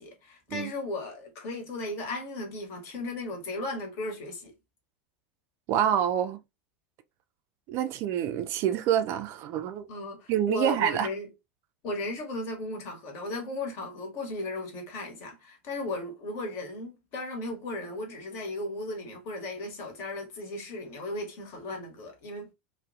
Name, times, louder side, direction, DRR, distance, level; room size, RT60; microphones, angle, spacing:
voice 1, 0.0-4.5 9.9-11.3 11.8-22.5, left 2 dB, 45° left, 1.0 m, -36 dB
voice 2, 5.7-6.4 7.7-9.8 10.3-11.1, right 10 dB, 40° right, 0.3 m, -27 dB
2.3 x 2.1 x 2.6 m
figure-of-eight pair, 85°, 7 cm